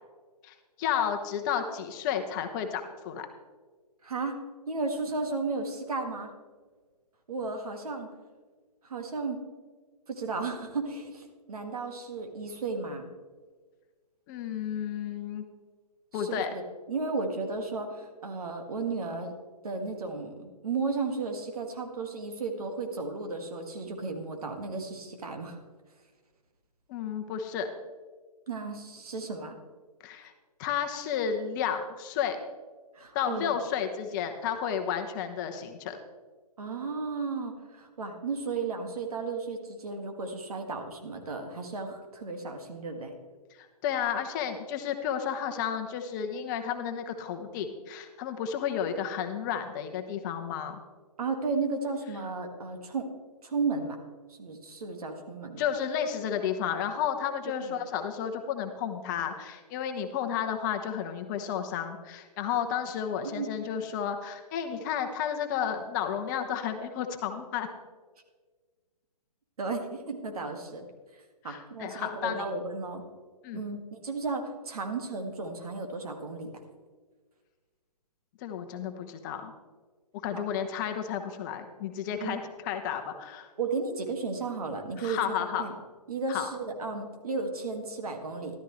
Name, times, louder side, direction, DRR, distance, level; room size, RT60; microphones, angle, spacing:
voice 1, 0.4-3.3 14.3-15.4 16.1-16.5 26.9-27.7 30.0-30.3 30.6-32.4 33.1-36.0 43.6-50.8 55.6-67.7 71.4-72.5 73.4-73.6 78.4-79.5 80.2-83.5 85.0-85.6 86.3-86.5, left 8 dB, 30° left, 6 dB, 1.0 m, -32 dB
voice 2, 4.0-4.4 4.7-6.3 7.3-8.1 8.8-9.4 10.1-13.1 16.1-16.6 16.9-19.3 19.6-25.6 28.5-29.6 32.9-33.5 36.6-43.1 51.2-53.1 53.4-54.0 54.3-55.6 57.6-57.8 63.2-63.6 69.6-70.9 71.4-73.0 73.5-76.5 80.3-80.4 82.2-82.4 83.6-85.7 86.1-88.6, right 3 dB, 65° right, 4 dB, 2.0 m, -34 dB
14.0 x 12.5 x 3.2 m, 1.4 s
hypercardioid pair, 135°, 20 cm